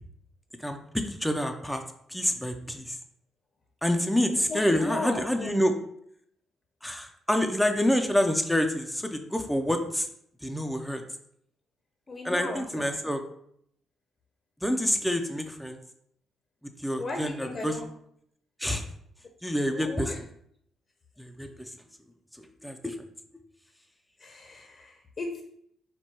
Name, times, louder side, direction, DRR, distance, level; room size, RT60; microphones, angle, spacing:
voice 1, 0.6-1.8 2.1-3.0 3.8-5.7 6.8-10.1 10.4-11.0 12.2-13.2 14.6-15.8 16.8-17.8 18.6-18.9 19.4-20.3 21.2-21.7 22.3-23.0, equal, 5° left, 5 dB, 0.4 m, -27 dB
voice 2, 4.3-5.5 12.1-12.9 17.0-17.8 19.7-20.2 24.2-25.4, left 2 dB, 40° left, 3 dB, 0.6 m, -36 dB
4.5 x 2.2 x 4.3 m, 0.69 s
cardioid pair, 90°, 0 cm